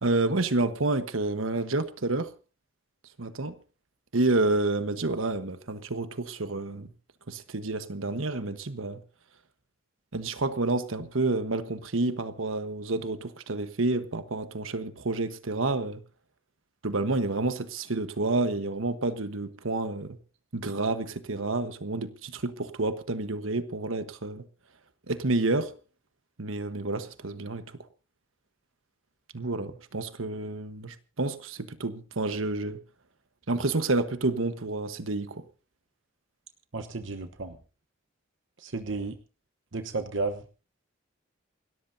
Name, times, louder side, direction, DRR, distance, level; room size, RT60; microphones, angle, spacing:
voice 1, 0.0-2.3 3.2-3.5 4.1-6.9 7.3-9.0 10.1-16.0 16.8-20.2 20.5-24.5 25.1-25.8 26.4-27.6 29.3-32.8 33.5-35.4, right 2 dB, 85° right, 1.3 m, -29 dB
voice 2, 36.7-37.6 38.6-39.1 39.7-40.4, right 3 dB, 70° right, 1.1 m, -32 dB
28.5 x 13.5 x 2.7 m
head